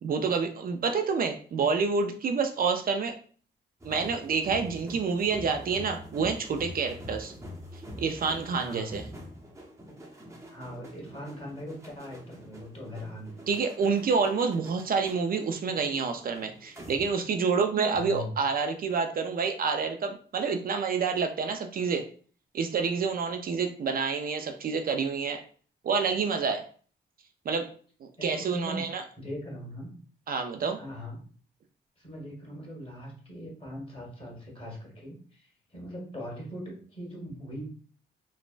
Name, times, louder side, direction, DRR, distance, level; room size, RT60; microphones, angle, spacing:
voice 1, 0.0-3.1 3.8-7.3 7.7-9.0 13.5-22.1 22.5-25.4 25.8-26.6 27.5-27.7 28.0-29.0 30.3-30.8, right 5 dB, 50° right, 5 dB, 0.4 m, -28 dB
sound 1, 3.8-17.4 17.7-18.0, equal, 15° right, 0.7 m, -45 dB
voice 2, 8.6-8.9 10.5-13.5 17.9-18.3 28.2-29.9 30.8-31.2 32.0-37.6, equal, 30° left, -2 dB, 1.5 m, -40 dB
3.2 x 2.0 x 2.4 m, 0.43 s
cardioid pair, 70°, 19 cm